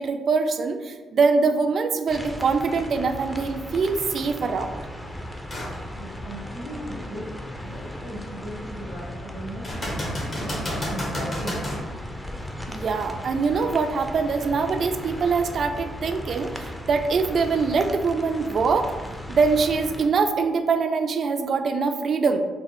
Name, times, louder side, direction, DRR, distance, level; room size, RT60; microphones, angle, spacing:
voice 1, 0.0-4.7 12.7-19.0 19.3-22.5, right 4 dB, 60° right, 8 dB, 0.3 m, -23 dB
sound 1, 2.1-20.1, left 1 dB, 5° left, 0.5 m, -37 dB
sound 2, 5.5-5.8 6.3-6.4 9.6-11.8 15.5-15.6, equal, 40° left, 1.3 m, -30 dB
voice 2, 5.9-7.3 7.6-11.6, equal, 85° left, -8 dB, 1.5 m, -37 dB
3.7 x 2.0 x 3.4 m, 1.3 s
supercardioid pair, 55°, 0 cm